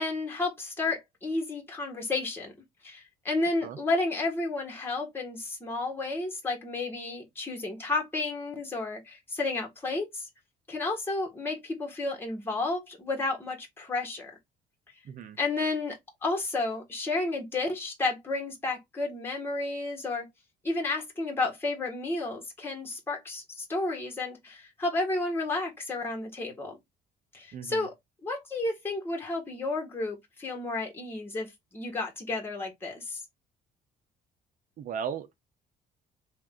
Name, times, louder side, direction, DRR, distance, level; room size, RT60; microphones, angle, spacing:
voice 1, 0.0-2.5 2.8-10.3 10.7-14.3 15.4-20.3 20.6-26.8 27.3-27.9 28.2-33.2, left 2 dB, 15° left, 1.5 m, -32 dB
voice 2, 15.0-15.4 27.5-27.9 34.8-35.4, right 7 dB, 55° right, 0.8 m, -36 dB
3.7 x 2.6 x 3.7 m
cardioid pair, 110°, 17 cm